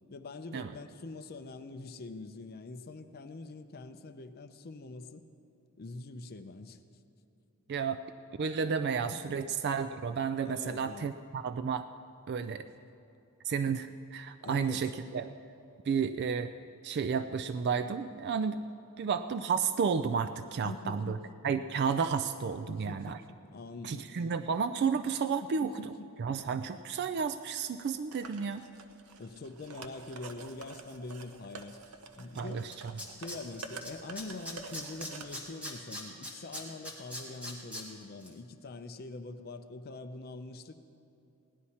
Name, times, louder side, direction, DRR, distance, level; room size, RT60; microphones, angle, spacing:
voice 1, 0.1-5.2 5.8-6.8 9.1-9.4 10.4-11.1 12.8-12.9 14.4-14.9 20.6-21.3 22.7-24.3 25.4-26.1 29.2-32.7 33.2-40.9, left 3 dB, 45° left, 9 dB, 0.5 m, -44 dB
voice 2, 7.7-8.0 8.4-11.9 12.3-12.7 13.5-15.3 15.9-16.5 16.8-18.6 19.0-21.2 21.4-23.2 23.8-25.9 26.2-28.6 32.3-32.7, right 6 dB, 50° right, 10 dB, 0.3 m, -32 dB
sound 1, 28.1-35.3, right 4 dB, 80° right, 0.8 m, -48 dB
Tools, 32.4-32.5 32.7-33.9 34.2-37.8 38.2-38.3, left 1 dB, 5° right, 1.7 m, -40 dB
17.0 x 11.0 x 4.2 m, 2.7 s
head